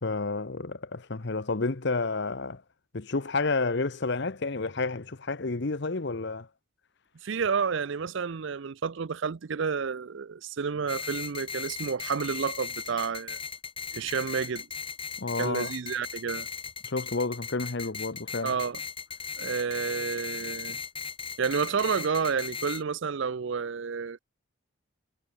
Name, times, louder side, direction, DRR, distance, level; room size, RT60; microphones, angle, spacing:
voice 1, 0.0-2.6 2.9-6.5 15.2-15.7 16.8-18.6, left 3 dB, 55° left, 0.9 m, -30 dB
voice 2, 7.2-13.4 13.9-14.7 15.4-16.5 18.4-18.8 19.4-20.8 21.4-24.2, right 6 dB, 60° right, 0.5 m, -30 dB
sound 1, 10.9-22.8, left 6 dB, 25° left, 4.1 m, -37 dB
head